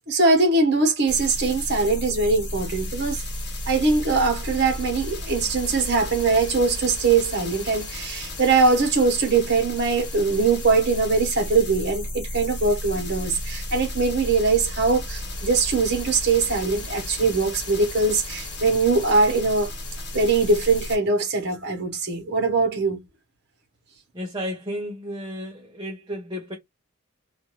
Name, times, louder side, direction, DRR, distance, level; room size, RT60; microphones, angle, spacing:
voice 1, 0.1-3.2 3.7-19.7 20.1-23.0, right 3 dB, 50° right, 1.1 m, -22 dB
sound 1, 1.1-21.0, left 1 dB, 55° left, 1.0 m, -33 dB
voice 2, 24.1-26.5, equal, 20° right, 0.6 m, -33 dB
2.6 x 2.4 x 3.0 m
head